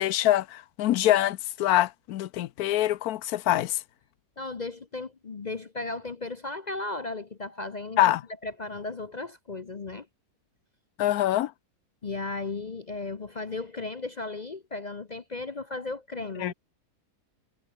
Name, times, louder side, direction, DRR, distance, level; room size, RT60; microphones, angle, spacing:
voice 1, 0.0-3.8 8.0-8.2 11.0-11.5 16.4-16.5, left 13 dB, 70° left, 1.1 m, -24 dB
voice 2, 4.4-8.1 8.4-10.1 12.0-16.5, left 3 dB, 35° left, 0.7 m, -35 dB
omnidirectional pair, 1.7 m